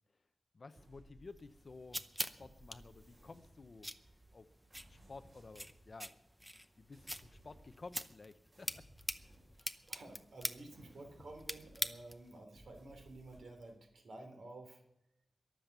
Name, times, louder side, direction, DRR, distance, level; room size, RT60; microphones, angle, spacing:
voice 1, 0.5-2.0 2.4-3.9 4.3-4.5 4.9-6.2 6.8-8.8, left 3 dB, 35° left, 11 dB, 0.8 m, -53 dB
sound 1, 0.7-1.8 2.4-4.0 4.7-6.0 6.9-8.2 8.5-10.1 10.7-12.1 12.5-13.8, right 1 dB, 40° right, 8.0 m, -62 dB
sound 2, 1.3-12.4, equal, ahead, 0.7 m, -45 dB
voice 2, 9.6-14.8, right 2 dB, 65° right, 4 dB, 3.4 m, -52 dB
22.5 x 7.8 x 6.7 m, 0.81 s
wide cardioid pair, 175°, 0 cm